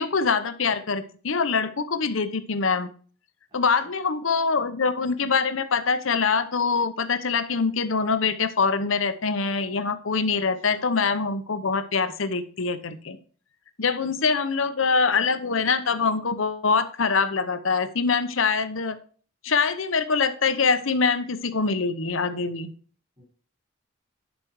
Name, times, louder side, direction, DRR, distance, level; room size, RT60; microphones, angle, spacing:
voice 1, 0.0-2.9 3.5-13.2 13.8-19.0 19.4-22.7, left 5 dB, 80° left, 11 dB, 0.9 m, -24 dB
voice 2, 3.5-3.9 10.4-10.9 13.8-14.2 23.2-23.3, equal, 30° right, -8 dB, 5.3 m, -56 dB
11.0 x 5.2 x 4.7 m, 0.43 s
head